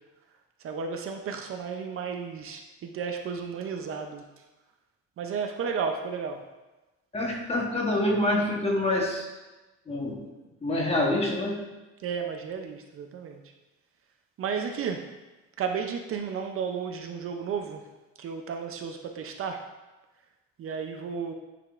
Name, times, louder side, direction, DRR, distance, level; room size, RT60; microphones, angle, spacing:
voice 1, 0.6-4.2 5.2-6.4 12.0-13.4 14.4-15.0 15.6-17.8 18.2-19.6 20.6-21.3, right 6 dB, 45° right, 4 dB, 0.5 m, -33 dB
voice 2, 7.1-9.3 9.9-10.2 10.6-11.6, left 1 dB, 20° left, 0 dB, 1.1 m, -26 dB
9.7 x 5.0 x 2.5 m, 1.1 s
cardioid pair, 150°, 31 cm